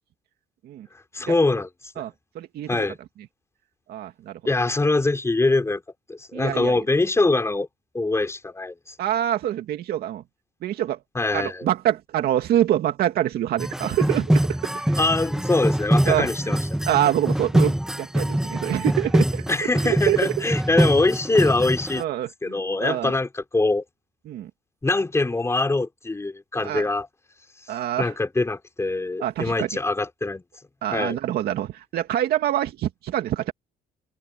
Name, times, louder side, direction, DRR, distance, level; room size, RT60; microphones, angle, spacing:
voice 1, 1.1-1.7 2.7-3.0 4.4-5.8 6.1-7.7 7.9-8.7 11.1-11.6 15.0-16.6 19.5-22.0 22.4-23.8 24.8-27.1 28.0-30.4 30.9-31.2, left 2 dB, 15° left, 4.9 m, -23 dB
voice 2, 2.0-2.8 3.9-4.4 6.3-6.8 9.0-10.2 10.6-11.0 11.3-15.0 16.0-16.6 16.9-20.3 22.0-23.1 24.3-24.5 26.6-26.9 27.7-28.1 29.2-29.7 30.8-33.5, right 12 dB, 70° right, 2.4 m, -26 dB
sound 1, 13.6-22.0, right 1 dB, 5° right, 1.5 m, -24 dB
cardioid pair, 110°, 17 cm